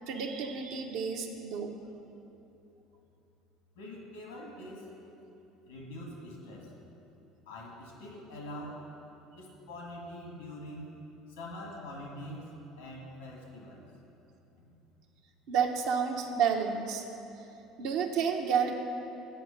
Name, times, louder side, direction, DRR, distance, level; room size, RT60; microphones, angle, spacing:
voice 1, 0.1-1.7 15.5-17.0 17.8-18.7, right 7 dB, 70° right, 3 dB, 0.8 m, -30 dB
voice 2, 3.8-4.9 5.7-6.7 7.5-8.8 9.4-10.9 11.3-12.5 12.8-13.8, left 1 dB, 90° left, -1 dB, 1.7 m, -44 dB
7.8 x 4.9 x 6.6 m, 2.9 s
hypercardioid pair, 75°, 0 cm